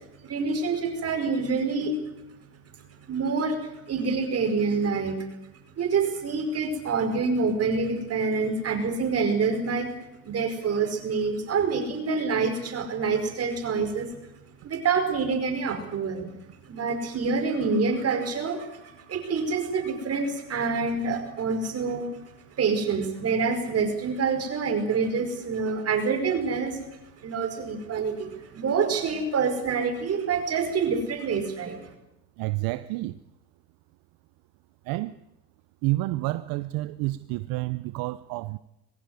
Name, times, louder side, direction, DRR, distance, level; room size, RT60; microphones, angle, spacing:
voice 1, 0.2-2.0 3.1-5.3 5.8-14.2 14.6-16.3 16.7-22.3 22.6-31.9, right 4 dB, 35° right, 5.3 m, -27 dB
voice 2, 32.4-33.1 34.9-35.1 35.8-38.6, right 19 dB, 60° right, 0.8 m, -29 dB
22.0 x 15.5 x 9.6 m
supercardioid pair, 100°, 39 cm